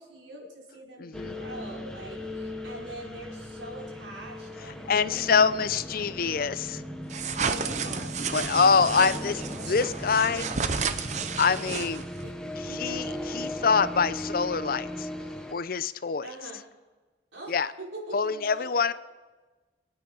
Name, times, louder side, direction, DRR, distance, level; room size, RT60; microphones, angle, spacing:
voice 1, 0.0-6.0 7.4-8.5 8.9-10.6 12.2-13.2 13.5-13.6 16.2-16.6 17.3-18.9, right 1 dB, 80° right, -2 dB, 4.4 m, -44 dB
voice 2, 1.0-1.4 4.9-6.8 8.3-10.5 11.4-12.0 12.7-15.1 15.5-16.3 17.5-17.7 18.1-18.9, left 5 dB, 50° left, 15 dB, 0.5 m, -25 dB
sound 1, 1.1-15.5, left 1 dB, 5° left, 1.0 m, -37 dB
sound 2, 7.1-12.2, right 5 dB, 40° right, 0.7 m, -32 dB
25.5 x 9.0 x 5.3 m, 1.3 s
head